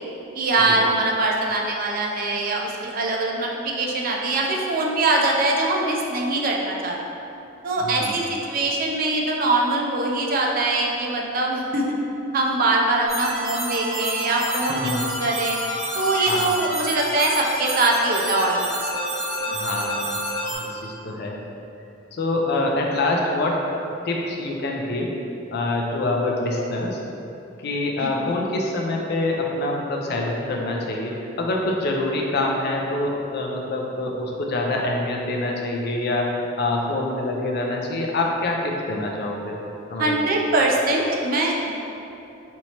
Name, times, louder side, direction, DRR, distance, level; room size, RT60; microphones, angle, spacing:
voice 1, 0.4-7.0 7.6-12.0 12.3-15.6 15.9-18.9 19.5-19.6 28.0-28.3 40.0-41.7, right 2 dB, 45° right, -1 dB, 0.4 m, -23 dB
voice 2, 7.8-8.2 14.5-15.1 16.3-16.5 19.5-20.2 20.5-21.4 22.1-23.6 24.0-25.2 25.5-27.0 27.6-39.6 39.9-40.3, left 2 dB, 55° left, 0 dB, 0.4 m, -25 dB
sound 1, 13.1-20.5, equal, 70° right, 1.2 m, -29 dB
4.4 x 2.9 x 2.8 m, 2.8 s
head